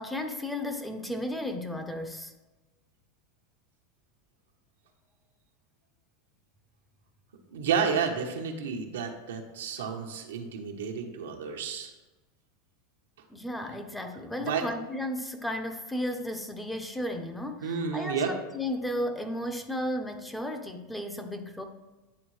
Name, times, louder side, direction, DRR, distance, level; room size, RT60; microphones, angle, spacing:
voice 1, 0.0-2.3 13.3-21.6, left 1 dB, 5° left, 5 dB, 0.6 m, -34 dB
voice 2, 7.5-11.9 14.4-14.6 17.6-18.3, right 6 dB, 90° right, 3 dB, 0.9 m, -31 dB
9.6 x 3.6 x 3.2 m, 1.1 s
supercardioid pair, 115°, 0 cm